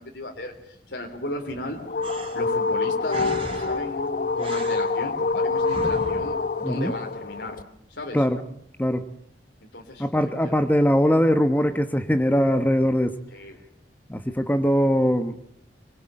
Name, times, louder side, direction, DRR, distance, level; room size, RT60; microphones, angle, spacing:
voice 1, 0.0-1.8 2.3-7.6 7.9-8.3 9.7-10.7 13.3-13.6, left 1 dB, 80° left, 3.6 m, -36 dB
sound 1, 1.5-7.6, left 4 dB, 50° left, 1.0 m, -26 dB
sound 2, 2.0-7.1, right 1 dB, 30° right, 3.9 m, -39 dB
voice 2, 10.0-13.2 14.1-15.4, equal, 10° left, 1.1 m, -21 dB
24.5 x 22.0 x 9.0 m
head